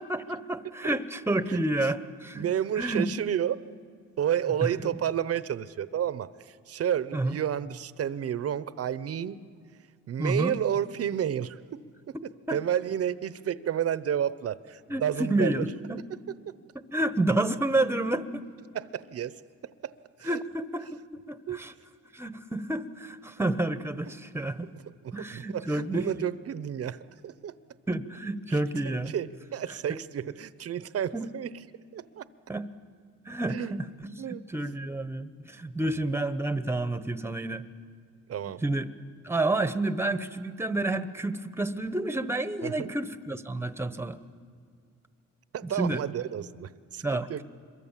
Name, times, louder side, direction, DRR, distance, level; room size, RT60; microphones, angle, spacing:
voice 1, 0.0-2.4 2.8-3.1 4.6-4.9 7.1-7.4 10.2-10.6 12.5-12.6 14.9-16.0 16.9-18.4 20.2-21.7 22.1-24.7 25.1-26.3 27.9-29.1 29.9-30.0 31.1-31.3 32.5-32.7 33.3-37.6 38.6-38.9 39.2-44.2 45.8-46.0 47.0-47.3, right 2 dB, 10° right, 12 dB, 1.0 m, -29 dB
voice 2, 1.5-1.9 2.3-3.6 4.2-9.4 10.1-11.8 12.1-12.2 12.5-15.5 16.1-16.5 18.7-19.4 19.8-19.9 20.2-20.4 21.5-21.6 24.7-27.5 28.5-28.6 28.8-31.5 31.9-32.2 33.5-33.7 34.2-34.5 38.3-38.6 42.6-42.9 45.5-47.4, right 9 dB, 50° right, 16 dB, 0.8 m, -31 dB
26.0 x 23.0 x 7.4 m, 2.1 s
cardioid pair, 90°, 30 cm